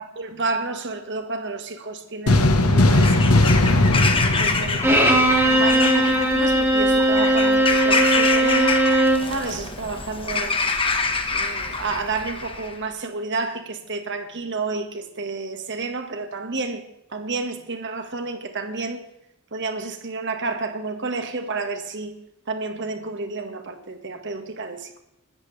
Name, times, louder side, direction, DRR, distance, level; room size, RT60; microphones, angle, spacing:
voice 1, 0.0-3.4 4.1-8.8 9.3-10.6 11.3-16.8 17.1-19.0 19.5-22.1 22.5-25.0, right 3 dB, 55° right, 1.7 m, -30 dB
sound 1, 2.3-5.7, left 2 dB, 80° left, 1.3 m, -18 dB
Bird vocalization bird call bird song / Crow, 2.9-12.8, left 4 dB, 25° left, 1.3 m, -26 dB
Bowed string instrument, 4.8-9.3, right 1 dB, 10° right, 2.4 m, -18 dB
25.5 x 13.5 x 3.4 m
head